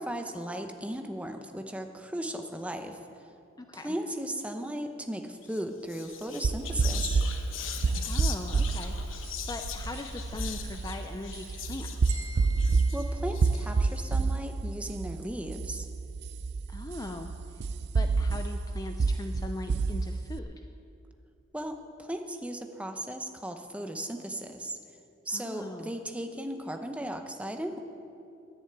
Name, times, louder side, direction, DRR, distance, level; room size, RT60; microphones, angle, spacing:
voice 1, 0.0-3.0 3.7-7.2 12.9-15.9 21.5-24.8 25.3-27.8, right 1 dB, 5° right, 5 dB, 0.8 m, -36 dB
voice 2, 3.6-3.9 8.0-12.2 16.7-17.6 17.9-20.7 25.3-25.9, left 2 dB, 20° left, 6 dB, 0.5 m, -40 dB
Whispering, 5.4-5.6 5.9-14.0, left 6 dB, 80° left, 0.9 m, -40 dB
sound 1, 6.4-20.4, right 4 dB, 55° right, 0.4 m, -29 dB
sound 2, 12.1-14.3, right 5 dB, 90° right, 1.6 m, -46 dB
11.0 x 10.0 x 9.1 m, 2.6 s
head